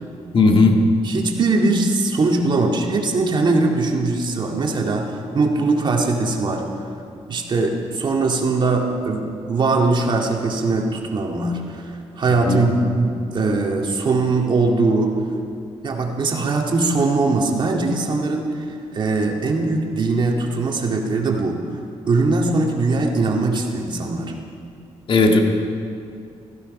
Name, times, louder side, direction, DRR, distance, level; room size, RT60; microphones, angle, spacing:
voice 1, 0.3-0.8 12.4-12.6 25.1-25.4, left 3 dB, 50° left, 2 dB, 2.0 m, -15 dB
voice 2, 1.0-6.6 7.3-15.2 15.8-18.7 18.9-21.6 22.1-24.3, right 3 dB, 45° right, 1 dB, 2.2 m, -21 dB
17.0 x 15.0 x 5.5 m, 2.5 s
cardioid pair, 100°, 11 cm